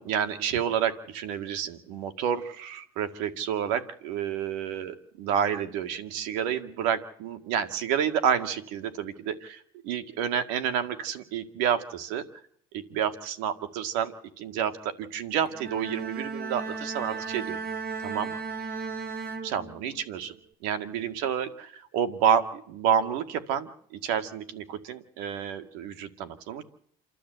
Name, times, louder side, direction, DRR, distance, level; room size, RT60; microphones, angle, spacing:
voice 1, 0.0-12.2 12.7-17.6 18.0-18.3 19.4-20.3 20.6-26.6, right 8 dB, 90° right, 9 dB, 2.0 m, -29 dB
Bowed string instrument, 15.5-20.1, right 4 dB, 50° right, 2.0 m, -36 dB
28.5 x 12.5 x 8.0 m, 0.67 s
cardioid pair, 100°, 20 cm